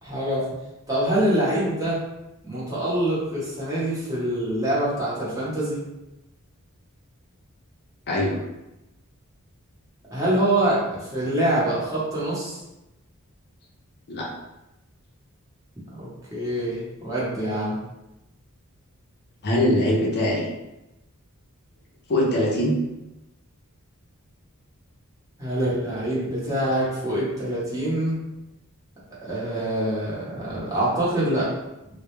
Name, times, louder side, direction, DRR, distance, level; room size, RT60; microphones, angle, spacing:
voice 1, 0.0-0.4 0.9-2.0 2.4-5.8 10.1-12.6 15.9-17.8 25.4-28.2 29.2-31.5, right 1 dB, 15° right, -8 dB, 0.8 m, -25 dB
voice 2, 8.1-8.4 14.1-14.3 19.4-20.5 22.1-22.8, left 1 dB, 50° left, -2 dB, 0.5 m, -22 dB
2.3 x 2.0 x 2.9 m, 0.96 s
head